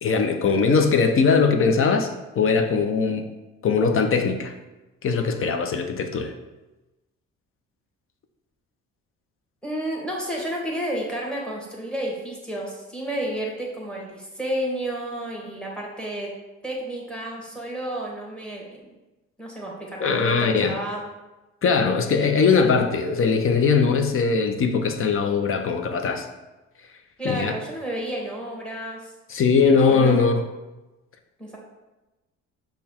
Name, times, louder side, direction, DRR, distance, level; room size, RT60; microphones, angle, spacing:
voice 1, 0.0-3.3 3.6-4.5 5.0-6.3 20.0-20.8 21.6-26.3 27.2-27.5 29.3-30.4, left 5 dB, 45° left, 6 dB, 0.6 m, -20 dB
voice 2, 9.6-16.3 16.6-18.8 19.4-21.0 27.2-29.1 29.7-30.2 31.4-31.6, right 1 dB, 5° left, -2 dB, 1.3 m, -31 dB
5.4 x 2.3 x 4.3 m, 1.1 s
cardioid pair, 90°, 30 cm